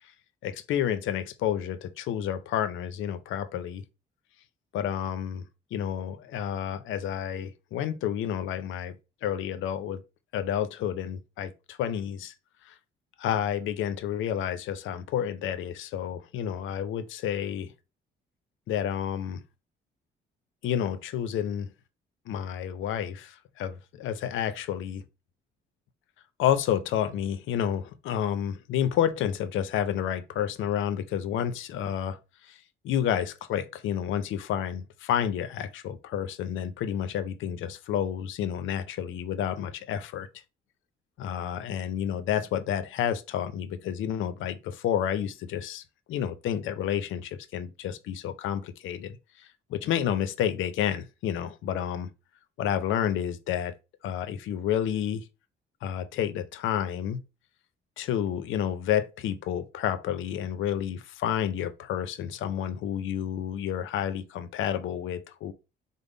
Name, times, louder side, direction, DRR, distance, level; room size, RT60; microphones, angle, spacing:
voice 1, 0.4-3.8 4.7-5.4 5.7-8.9 9.2-10.0 10.3-12.3 12.6-12.7 13.2-17.7 18.7-19.4 20.6-21.7 22.3-25.0 26.4-32.2 32.4-32.6 32.8-40.3 41.2-45.8 46.1-52.1 52.6-53.7 54.0-55.3 55.8-57.2 58.0-65.5, left 9 dB, 80° left, 0.5 m, -30 dB
3.5 x 2.0 x 3.7 m
cardioid pair, 90°, 20 cm